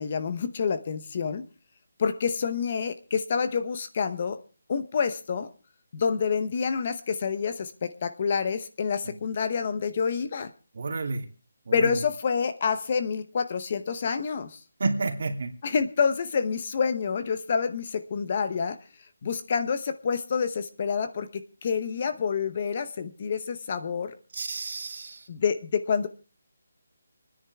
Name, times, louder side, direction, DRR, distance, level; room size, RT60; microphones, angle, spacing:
voice 1, 0.0-1.4 2.0-4.4 4.7-5.5 5.9-10.5 11.7-14.6 15.6-18.8 19.2-21.3 21.6-24.1 25.3-26.1, left 6 dB, 30° left, 11 dB, 0.8 m, -28 dB
voice 2, 10.7-11.2 11.7-11.9 14.8-15.5 24.3-25.3, right 3 dB, 45° right, 5 dB, 2.8 m, -30 dB
27.5 x 10.0 x 3.5 m, 0.35 s
hypercardioid pair, 175°, 0 cm